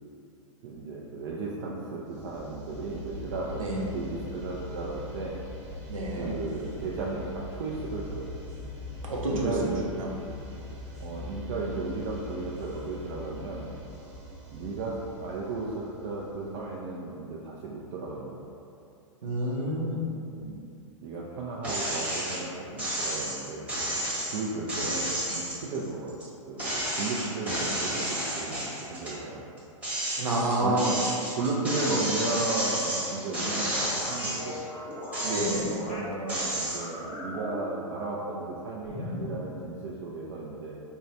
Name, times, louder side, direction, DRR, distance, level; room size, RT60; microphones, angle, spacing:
voice 1, 0.6-3.6 3.9-5.4 6.2-8.3 9.2-9.9 11.0-13.7 14.5-18.4 20.3-20.6 21.0-23.7 24.3-26.1 26.5-29.4 30.6-30.8 31.4-34.6 35.9-40.8, right 3 dB, 50° right, -4 dB, 0.4 m, -34 dB
sound 1, 2.1-16.9, left 1 dB, 35° right, 0.9 m, -42 dB
voice 2, 3.6-3.9 5.9-6.3 9.0-9.7 10.0-10.1 19.2-20.0 30.2-30.9 35.2-35.7, right 1 dB, 85° right, -3 dB, 0.7 m, -28 dB
sound 2, 21.6-22.4 22.8-26.3 26.6-29.2 29.6-34.6 35.0-35.9 36.3-36.8, right 1 dB, 10° right, 1.0 m, -31 dB
sound 3, 33.8-36.1 36.6-38.5 38.8-39.4, left 1 dB, 40° left, 0.6 m, -39 dB
4.5 x 2.2 x 2.6 m, 2.7 s
hypercardioid pair, 115°, 17 cm